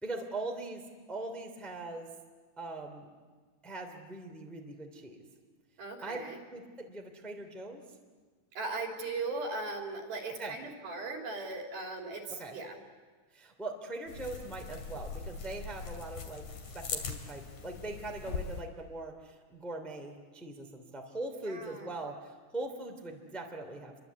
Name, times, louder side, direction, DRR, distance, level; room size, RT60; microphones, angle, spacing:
voice 1, 0.0-0.8 1.1-2.1 2.6-3.1 3.6-5.2 6.0-6.2 6.5-7.8 10.4-10.5 12.4-12.6 13.3-16.4 16.7-24.0, right 2 dB, ahead, 2 dB, 2.1 m, -41 dB
voice 2, 5.8-6.4 8.6-12.8 21.4-21.9, right 3 dB, 70° right, 1 dB, 5.2 m, -38 dB
sound 1, 14.1-18.6, left 5 dB, 50° left, 3.4 m, -41 dB
28.5 x 23.5 x 8.3 m, 1.4 s
omnidirectional pair, 4.5 m